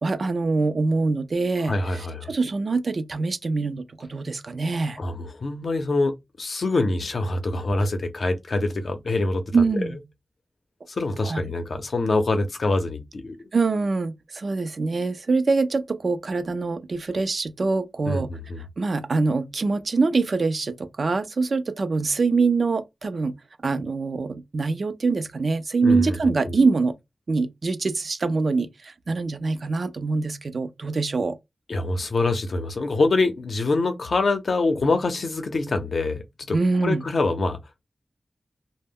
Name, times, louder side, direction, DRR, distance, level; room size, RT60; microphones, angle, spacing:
voice 1, 0.0-5.0 9.5-9.9 11.2-11.5 13.5-18.3 18.8-23.4 23.6-27.0 27.3-31.4 36.5-37.0, right 3 dB, 70° right, 0.4 m, -24 dB
voice 2, 1.6-2.3 5.0-9.8 10.9-13.4 18.1-18.6 25.8-26.6 31.7-36.6 36.8-37.6, left 2 dB, 75° left, 0.6 m, -25 dB
2.1 x 2.0 x 3.4 m
wide cardioid pair, 75°, 0 cm